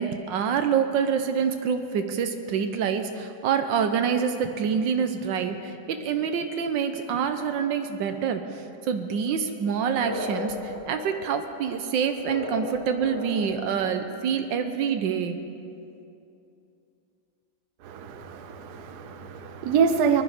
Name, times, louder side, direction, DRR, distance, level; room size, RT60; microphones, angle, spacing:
voice 1, 0.0-15.4, right 7 dB, 85° right, 7 dB, 1.5 m, -26 dB
sound 1, 10.0-13.7, left 2 dB, 70° left, 3.5 m, -35 dB
voice 2, 17.8-20.2, right 6 dB, 65° right, 8 dB, 1.3 m, -26 dB
20.0 x 12.0 x 5.1 m, 2.6 s
omnidirectional pair, 2.0 m